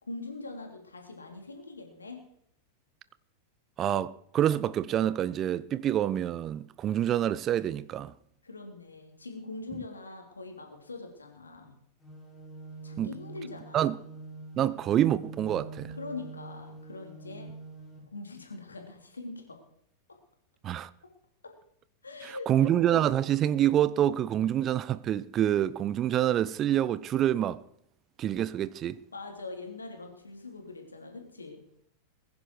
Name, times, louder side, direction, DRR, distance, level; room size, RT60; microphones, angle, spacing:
voice 1, 0.0-2.2 8.4-11.8 12.8-13.9 15.9-17.5 18.1-19.6 21.4-21.5 22.0-22.7 29.1-31.6, left 3 dB, 75° left, 3.3 m, -42 dB
voice 2, 3.8-8.1 13.0-13.1 13.7-14.0 14.6-15.9 20.6-20.9 22.2-27.6 28.2-29.0, right 11 dB, 30° right, 0.6 m, -27 dB
sound 1, 12.0-18.0, right 3 dB, 5° left, 7.3 m, -45 dB
21.0 x 10.5 x 4.7 m
figure-of-eight pair, 90°, 0 cm